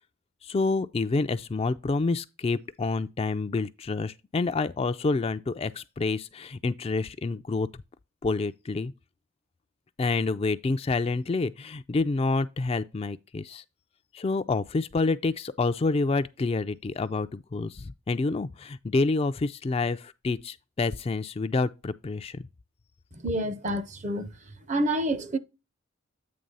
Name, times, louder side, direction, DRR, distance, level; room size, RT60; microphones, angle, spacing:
voice 1, 0.4-7.7 8.2-8.9 10.0-13.6 14.1-22.4, left 3 dB, 30° left, 0.3 m, -28 dB
voice 2, 23.2-24.3 24.7-25.4, right 1 dB, 35° right, 0.6 m, -28 dB
8.7 x 3.2 x 5.4 m
head